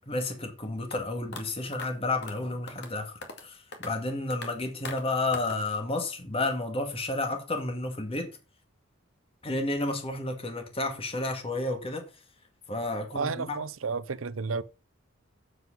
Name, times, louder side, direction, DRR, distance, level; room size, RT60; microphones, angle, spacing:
voice 1, 0.1-8.3 9.4-12.1 12.7-13.6, left 2 dB, 30° left, 2.0 m, -31 dB
sound 1, 0.9-1.0 1.3-1.4 1.7-1.9 2.2-2.4 2.7-2.9 3.2-3.5 3.7-3.9 4.3-4.5 4.9-5.0 5.3-5.6, left 3 dB, 60° left, 2.2 m, -40 dB
voice 2, 13.1-14.6, right 4 dB, 90° right, 0.7 m, -32 dB
7.8 x 7.7 x 5.4 m
head